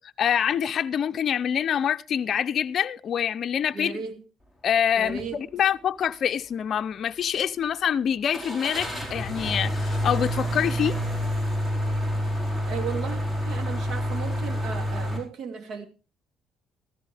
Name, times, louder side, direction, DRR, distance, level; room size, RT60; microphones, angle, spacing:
voice 1, 0.2-3.9 4.6-11.0, left 8 dB, 50° left, 0.5 m, -25 dB
voice 2, 3.7-4.1 5.0-5.4 12.7-15.9, right 6 dB, 70° right, 2.5 m, -35 dB
sound 1, 5.1-5.3 5.7-5.8 8.3-15.2, equal, 20° right, 4.8 m, -28 dB
14.5 x 14.0 x 3.4 m
cardioid pair, 115°, 0 cm